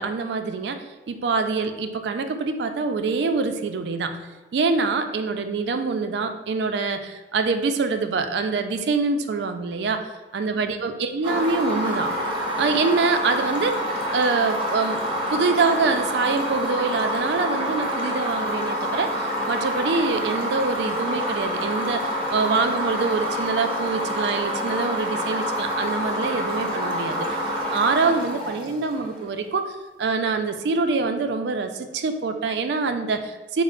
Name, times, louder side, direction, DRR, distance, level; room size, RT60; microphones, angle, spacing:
voice 1, 0.0-4.2 4.5-10.0 10.3-12.1 12.6-13.8 14.1-15.0 15.3-27.3 27.7-29.7 30.0-33.6, right 4 dB, 70° right, 7 dB, 0.3 m, -25 dB
sound 1, 11.2-29.2, equal, 30° right, 0.7 m, -27 dB
4.2 x 2.0 x 3.8 m, 1.3 s
head